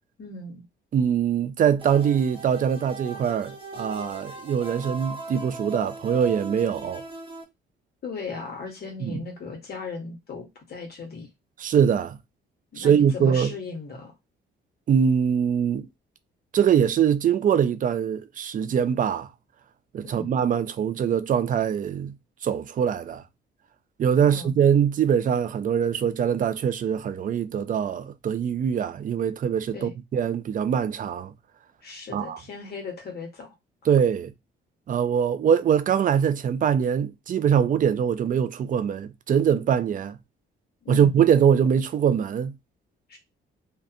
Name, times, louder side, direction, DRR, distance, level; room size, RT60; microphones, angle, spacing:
voice 1, 0.2-0.6 8.0-11.3 12.7-14.1 20.0-20.3 24.3-24.5 29.7-29.9 31.8-33.5 40.8-41.2 43.1-43.2, left 4 dB, 55° left, 1.2 m, -37 dB
voice 2, 0.9-7.0 9.0-9.2 11.6-12.2 12.8-13.5 14.9-15.9 16.5-19.3 19.9-22.1 22.4-23.2 24.0-31.3 32.1-32.4 33.9-34.3 34.9-40.2 40.9-42.5, right 8 dB, 45° right, 0.4 m, -23 dB
sound 1, 1.8-7.4, right 2 dB, 25° right, 0.9 m, -38 dB
2.5 x 2.3 x 2.5 m
cardioid pair, 90°, 20 cm